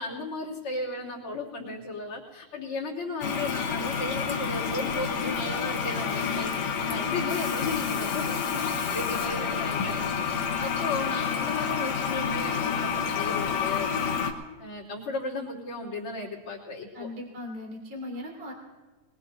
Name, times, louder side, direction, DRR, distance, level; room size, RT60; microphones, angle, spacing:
voice 1, 0.0-14.0 14.6-17.1, left 2 dB, 45° left, -4 dB, 3.4 m, -35 dB
Toilet flush, 3.2-14.3, left 6 dB, 60° left, 2.0 m, -29 dB
voice 2, 16.9-18.5, left 1 dB, 20° right, 0 dB, 2.6 m, -38 dB
23.0 x 21.0 x 2.7 m, 1.3 s
omnidirectional pair, 3.6 m